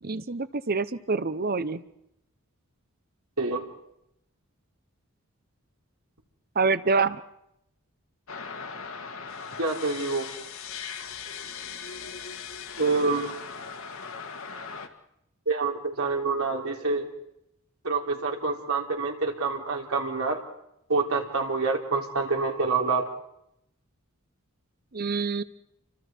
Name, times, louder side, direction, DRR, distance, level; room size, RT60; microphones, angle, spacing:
voice 1, 0.0-1.8 6.5-7.2 24.9-25.4, right 4 dB, 45° right, 15 dB, 0.9 m, -26 dB
sound 1, 8.3-14.9, left 6 dB, 70° left, 2.0 m, -39 dB
voice 2, 9.6-10.3 12.8-13.3 15.5-17.1 17.8-20.4 20.9-23.1, right 3 dB, 85° right, 1 dB, 3.9 m, -27 dB
30.0 x 25.0 x 4.6 m, 0.79 s
head